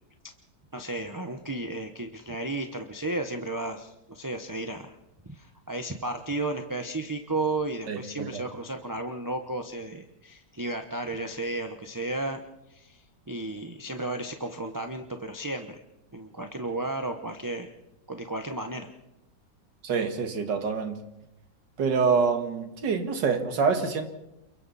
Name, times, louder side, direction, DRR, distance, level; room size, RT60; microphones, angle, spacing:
voice 1, 0.7-5.0 5.3-12.4 12.7-15.8 16.1-17.7 18.1-18.9, right 2 dB, 15° right, 5 dB, 0.8 m, -33 dB
voice 2, 7.9-8.4 19.8-21.0 21.8-24.1, right 5 dB, 75° right, 6 dB, 2.5 m, -26 dB
29.0 x 22.5 x 4.2 m, 0.89 s
omnidirectional pair, 1.9 m